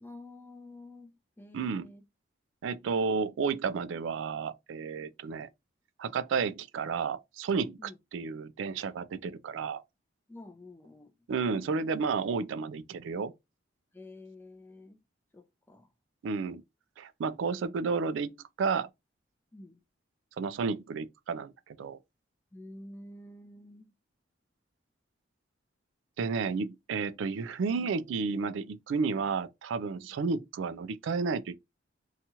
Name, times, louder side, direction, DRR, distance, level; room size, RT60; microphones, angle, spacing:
voice 1, 0.0-2.0 7.8-8.0 10.3-11.1 13.9-15.0 15.3-15.9 19.5-19.8 22.5-23.9, left 1 dB, 10° left, 0.4 m, -49 dB
voice 2, 1.5-1.9 2.6-5.5 6.0-9.8 11.3-13.3 16.2-16.6 17.0-18.9 20.4-22.0 26.2-31.6, right 5 dB, 80° right, 0.3 m, -32 dB
2.8 x 2.3 x 2.8 m
head